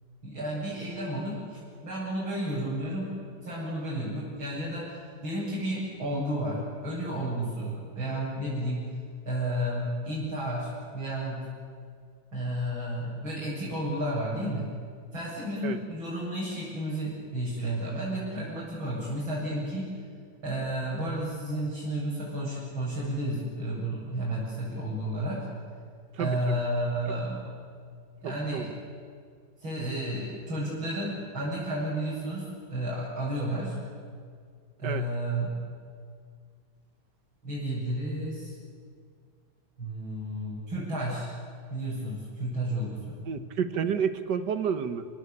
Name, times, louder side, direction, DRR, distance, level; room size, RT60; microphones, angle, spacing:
voice 1, 0.2-3.1 3.4-8.8 9.3-11.4 12.3-14.7 15.1-19.9 20.4-25.5 26.2-27.4 28.2-28.7 29.6-33.8 34.8-35.5 37.4-38.5 39.8-41.3 41.7-43.2, right 1 dB, 90° right, -9 dB, 8.9 m, -32 dB
voice 2, 26.2-26.6 27.1-27.2 28.5-28.7 34.8-35.1 43.3-45.1, right 7 dB, 60° right, 10 dB, 1.7 m, -30 dB
29.0 x 19.5 x 8.6 m, 2.1 s
omnidirectional pair, 2.1 m